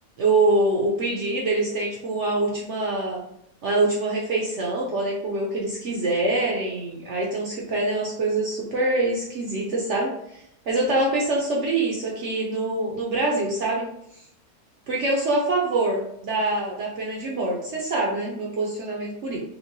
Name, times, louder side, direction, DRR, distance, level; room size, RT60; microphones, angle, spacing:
voice 1, 0.2-3.2 3.6-13.9 14.9-19.4, right 2 dB, 65° right, -2 dB, 0.7 m, -25 dB
4.4 x 2.1 x 2.6 m, 0.74 s
omnidirectional pair, 1.7 m